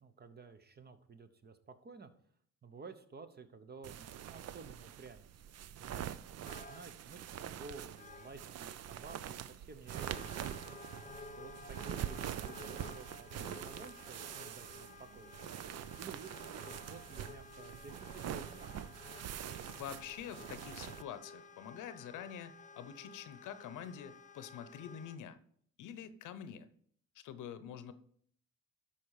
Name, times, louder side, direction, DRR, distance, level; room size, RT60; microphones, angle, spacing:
voice 1, 0.0-2.1 2.6-6.0 6.5-10.7 11.4-15.3 16.0-18.9, right 4 dB, 35° right, 10 dB, 0.9 m, -53 dB
sound 1, 3.8-21.0, right 10 dB, 55° right, 0.5 m, -45 dB
sound 2, 6.4-6.9 7.6-7.7 8.0-8.4 9.8-25.2, left 3 dB, 25° left, 0.8 m, -53 dB
voice 2, 19.7-25.4 25.8-26.7 27.1-27.9, left 9 dB, 85° left, 13 dB, 0.8 m, -46 dB
12.0 x 4.4 x 4.8 m, 0.62 s
cardioid pair, 90°, 30 cm